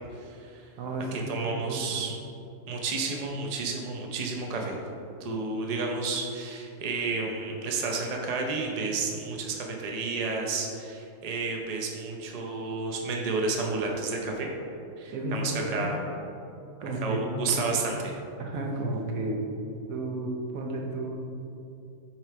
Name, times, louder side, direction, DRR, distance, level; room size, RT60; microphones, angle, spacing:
voice 1, 0.2-0.6 1.1-2.2 2.7-4.8 5.2-14.5 15.0-16.0 17.0-18.2, right 3 dB, 35° right, 0 dB, 0.7 m, -31 dB
voice 2, 0.8-2.1 15.1-15.9 16.8-17.9 18.4-19.4 19.9-21.2, right 1 dB, 90° right, 1 dB, 1.3 m, -32 dB
7.5 x 3.2 x 4.7 m, 2.7 s
omnidirectional pair, 1.4 m